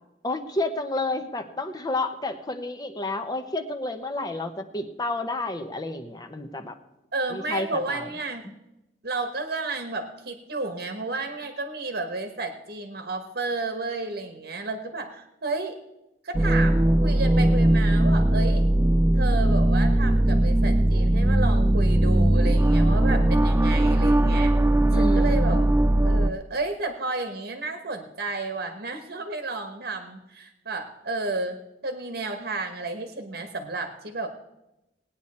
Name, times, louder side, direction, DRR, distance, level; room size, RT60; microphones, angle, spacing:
voice 1, 0.2-6.8 7.3-8.1 24.9-25.6, left 2 dB, 25° left, 7 dB, 0.8 m, -30 dB
voice 2, 7.1-8.4 9.0-15.8 16.2-18.7 19.1-24.5 25.0-25.6 26.0-31.6 31.8-34.3, right 3 dB, 65° right, 6 dB, 1.2 m, -32 dB
sound 1, 16.3-26.3, right 1 dB, 15° right, 0.3 m, -19 dB
19.0 x 9.4 x 4.2 m, 0.95 s
head